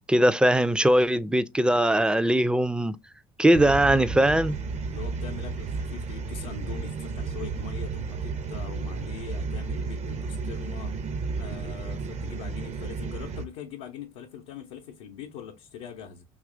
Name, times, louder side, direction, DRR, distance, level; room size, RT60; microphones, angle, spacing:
voice 1, 0.1-3.0 3.4-4.6, right 1 dB, 5° right, 0.3 m, -21 dB
sound 1, 3.5-13.4, right 4 dB, 45° right, 0.6 m, -33 dB
voice 2, 4.9-16.2, left 8 dB, 85° left, 0.5 m, -42 dB
2.9 x 2.4 x 3.6 m
supercardioid pair, 70°, 16 cm